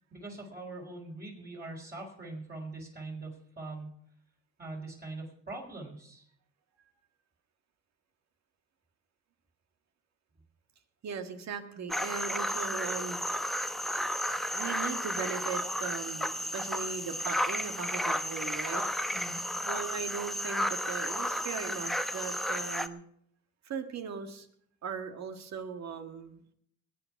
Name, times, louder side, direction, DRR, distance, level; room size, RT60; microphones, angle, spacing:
voice 1, 0.1-3.9 4.6-6.2 19.1-19.4, right 2 dB, 30° right, -3 dB, 4.3 m, -42 dB
voice 2, 11.0-13.2 14.5-18.8 19.6-23.0 23.6-24.5 24.8-26.4, right 6 dB, 60° right, 6 dB, 2.0 m, -38 dB
sound 1, 11.9-22.9, equal, ahead, 0.9 m, -33 dB
20.0 x 8.9 x 5.9 m, 0.68 s
cardioid pair, 90°, 30 cm